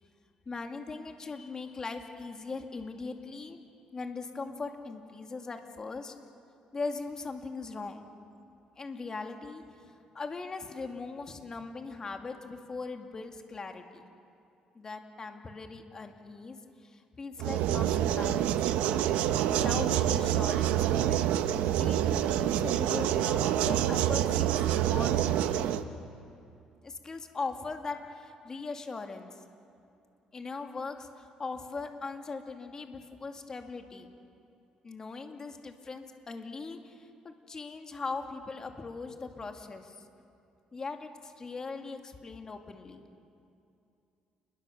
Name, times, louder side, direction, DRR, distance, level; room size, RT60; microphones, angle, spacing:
voice 1, 0.5-3.6 3.9-6.1 6.7-8.1 8.8-14.1 14.7-18.6 19.4-25.7 26.8-29.3 30.3-34.1 34.8-40.0 40.7-43.0, left 4 dB, 30° left, 4 dB, 2.3 m, -40 dB
sound 1, 17.4-25.8, right 11 dB, 90° right, 1.0 m, -27 dB
29.5 x 21.5 x 7.1 m, 2.6 s
cardioid pair, 110°, 2 cm